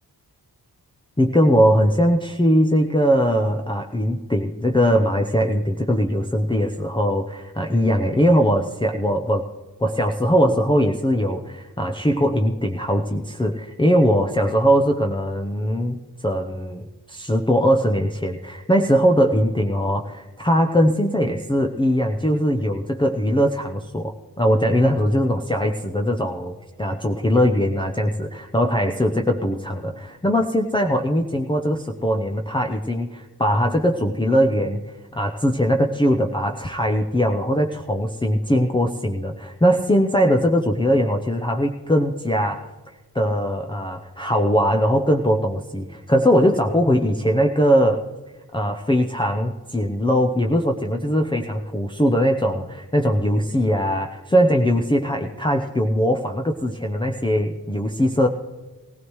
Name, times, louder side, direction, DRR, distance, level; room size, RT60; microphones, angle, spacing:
voice 1, 1.2-9.5 9.8-42.7 43.1-48.0 48.5-58.3, equal, 10° left, 2 dB, 0.7 m, -20 dB
17.5 x 16.0 x 3.2 m, 1.2 s
wide cardioid pair, 70°, 40 cm